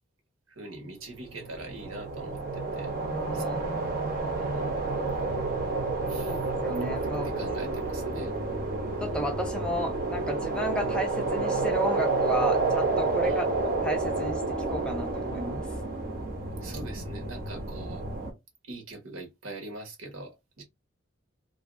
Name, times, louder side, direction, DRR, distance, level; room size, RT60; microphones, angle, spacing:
voice 1, 0.6-2.9 3.3-3.4 4.4-4.7 6.1-6.4 7.0-8.3 9.1-9.2 13.2-13.5 16.6-18.0 18.7-20.6, right 2 dB, 80° right, 1.2 m, -42 dB
sound 1, 1.3-18.3, right 3 dB, 45° right, 0.8 m, -30 dB
voice 2, 3.0-3.6 6.2-7.3 9.0-13.5 13.8-15.6, equal, 5° left, 0.5 m, -33 dB
2.8 x 2.6 x 2.4 m
head